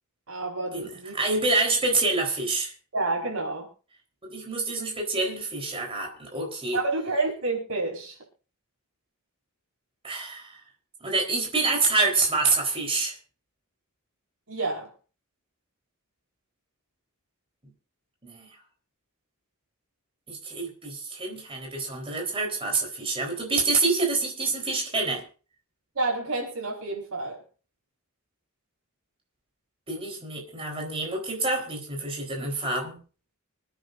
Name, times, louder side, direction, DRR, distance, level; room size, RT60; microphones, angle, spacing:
voice 1, 0.3-1.1 2.9-3.7 6.7-8.2 14.5-14.9 25.9-27.4, right 3 dB, 70° right, -1 dB, 4.9 m, -29 dB
voice 2, 1.1-2.7 4.2-6.8 10.0-10.6 11.0-13.1 18.2-18.5 20.3-25.2 29.9-33.0, right 3 dB, 25° right, 1 dB, 4.1 m, -27 dB
26.5 x 9.5 x 2.6 m, 0.36 s
head